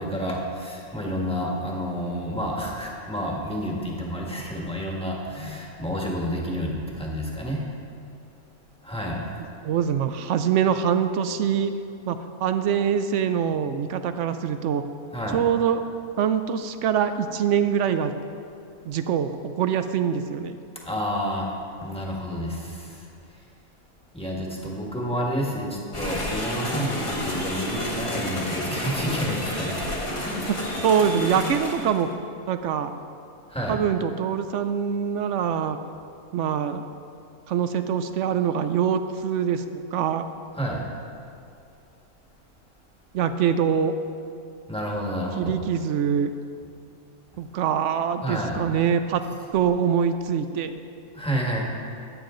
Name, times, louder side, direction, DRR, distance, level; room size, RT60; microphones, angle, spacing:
voice 1, 0.0-7.6 8.8-9.2 15.1-15.4 20.8-21.5 21.8-23.0 24.1-29.8 30.2-30.5 31.3-31.5 33.5-33.7 40.6-40.8 44.7-45.6 48.2-48.7 51.1-51.6, equal, 5° left, -3 dB, 1.5 m, -29 dB
voice 2, 9.6-11.7 12.1-14.8 15.3-15.8 16.2-18.1 18.9-20.6 30.8-32.1 32.5-32.9 33.7-35.8 36.3-36.8 37.5-40.2 43.1-43.9 45.4-46.3 47.4-49.2 49.5-50.7, right 8 dB, 65° right, 10 dB, 0.8 m, -24 dB
sound 1, 25.9-32.0, left 1 dB, 20° left, 1.3 m, -30 dB
14.0 x 9.1 x 3.8 m, 2.5 s
omnidirectional pair, 1.6 m